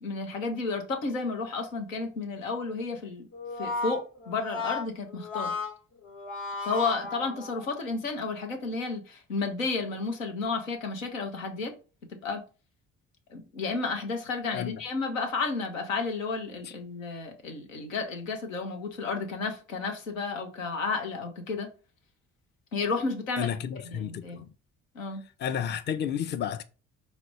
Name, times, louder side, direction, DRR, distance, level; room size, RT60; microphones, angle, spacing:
voice 1, 0.0-3.2 3.6-5.5 6.6-11.7 12.2-12.4 13.3-21.7 22.7-23.5 23.9-24.4 24.9-25.2, left 4 dB, 85° left, 0.7 m, -32 dB
Brass instrument, 3.3-7.8, left 3 dB, 60° left, 1.1 m, -35 dB
voice 2, 23.4-24.5 25.4-26.6, left 8 dB, 30° left, 0.5 m, -32 dB
4.9 x 2.0 x 4.6 m
figure-of-eight pair, 45°, 39 cm